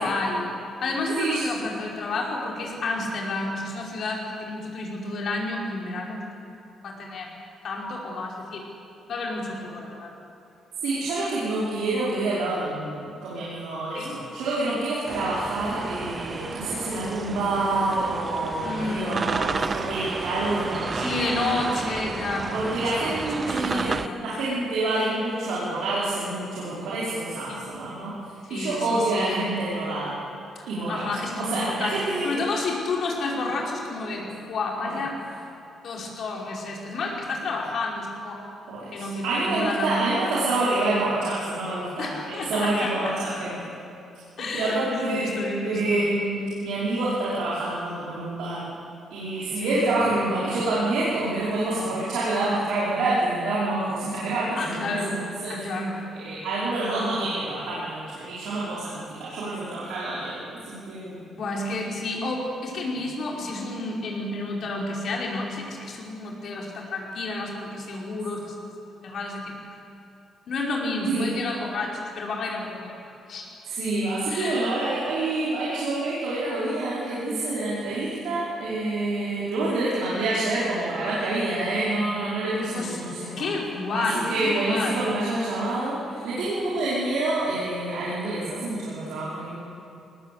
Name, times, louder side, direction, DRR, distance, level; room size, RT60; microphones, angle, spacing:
voice 1, 0.0-6.3 6.8-7.3 7.6-8.7 9.1-10.1 13.9-14.2 18.6-19.2 21.0-23.1 23.4-24.2 27.5-27.6 28.5-29.5 30.9-35.2 35.8-38.4 38.9-40.0 40.4-40.5 42.0-43.1 44.4-46.0 49.6-49.8 54.6-55.2 55.5-56.0 61.4-68.7 69.0-69.6 70.5-72.9 73.3-73.5 74.3-74.7 82.7-83.0 83.4-85.1, left 2 dB, 60° left, -1 dB, 5.1 m, -30 dB
voice 2, 10.8-21.1 22.5-28.1 28.5-30.1 30.7-31.1 31.4-32.3 34.8-35.0 38.7-43.5 44.4-48.6 49.1-55.2 55.4-55.6 56.1-61.3 71.1-71.3 73.6-83.5 83.9-89.6, right 2 dB, 90° right, -8 dB, 4.8 m, -27 dB
sound 1, 15.1-24.1, right 4 dB, 35° right, 0.7 m, -32 dB
21.5 x 19.0 x 8.4 m, 2.7 s
cardioid pair, 95°, 0 cm